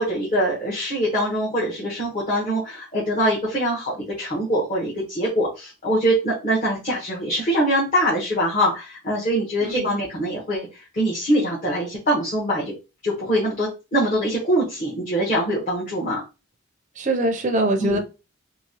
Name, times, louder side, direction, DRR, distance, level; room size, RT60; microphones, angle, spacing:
voice 1, 0.0-12.7 13.0-16.2 17.8-18.0, equal, 35° left, -6 dB, 0.9 m, -23 dB
voice 2, 17.0-18.0, right 1 dB, 35° right, 6 dB, 0.5 m, -22 dB
2.9 x 2.7 x 2.7 m, 0.30 s
head